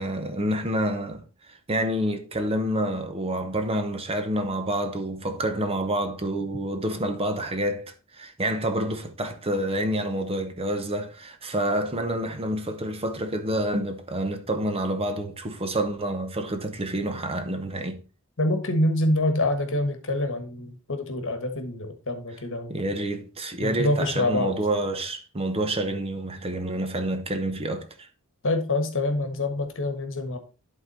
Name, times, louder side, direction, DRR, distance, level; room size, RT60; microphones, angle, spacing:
voice 1, 0.0-18.0 22.7-28.1, right 1 dB, 25° right, 0.8 m, -28 dB
voice 2, 18.4-22.8 23.6-24.5 28.4-30.4, left 1 dB, 60° left, 1.3 m, -26 dB
11.0 x 3.9 x 4.1 m
head